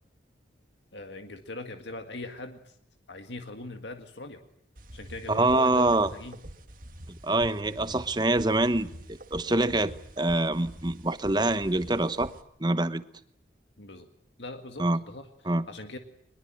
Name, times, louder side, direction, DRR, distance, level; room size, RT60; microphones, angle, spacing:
voice 1, 0.9-2.8 3.1-4.4 4.9-6.4 13.8-14.1 14.4-16.0, left 2 dB, 75° left, 6 dB, 1.9 m, -41 dB
sound 1, 4.8-12.4, right 1 dB, 50° right, 2.0 m, -46 dB
voice 2, 5.3-6.1 7.2-8.9 9.3-12.3 12.6-13.0 14.8-15.0 15.5-15.7, right 2 dB, 25° right, 12 dB, 1.1 m, -25 dB
23.0 x 21.5 x 8.9 m, 0.68 s
head